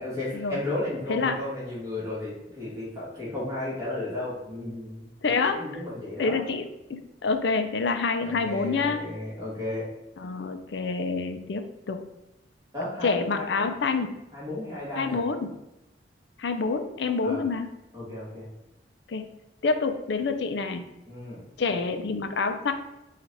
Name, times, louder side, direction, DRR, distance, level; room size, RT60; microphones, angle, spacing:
voice 1, 0.0-5.1 5.5-6.4 8.2-9.9 12.7-13.5 14.3-15.2 17.2-17.4 17.9-18.5 21.1-21.4, left 2 dB, 20° right, -8 dB, 1.5 m, -34 dB
voice 2, 5.2-5.6 6.2-9.0 10.2-12.0 13.0-14.1 15.0-15.5 16.4-17.7 19.1-19.2 19.6-20.8 21.6-22.7, left 4 dB, 65° left, 7 dB, 0.5 m, -27 dB
4.4 x 2.5 x 4.0 m, 0.96 s
head